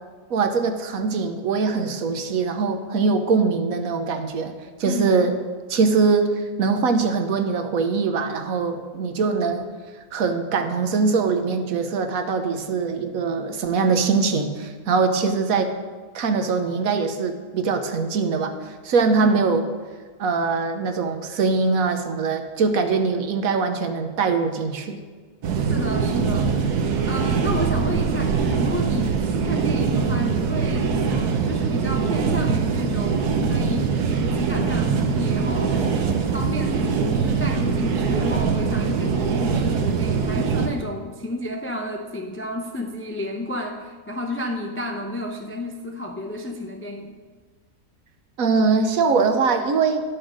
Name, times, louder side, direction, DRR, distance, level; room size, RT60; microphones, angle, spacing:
voice 1, 0.3-4.5 4.8-5.3 5.7-6.3 6.6-9.7 10.1-15.7 16.1-18.5 18.8-19.6 20.2-25.0 48.4-50.0, right 4 dB, 65° right, 7 dB, 1.2 m, -22 dB
voice 2, 4.8-5.2 19.2-19.3 25.7-26.7 27.1-36.1 36.3-47.1, left 1 dB, 20° left, 3 dB, 0.3 m, -31 dB
sound 1, 25.4-40.7, right 5 dB, 85° right, 1.4 m, -23 dB
10.5 x 6.3 x 6.3 m, 1.4 s
omnidirectional pair, 1.6 m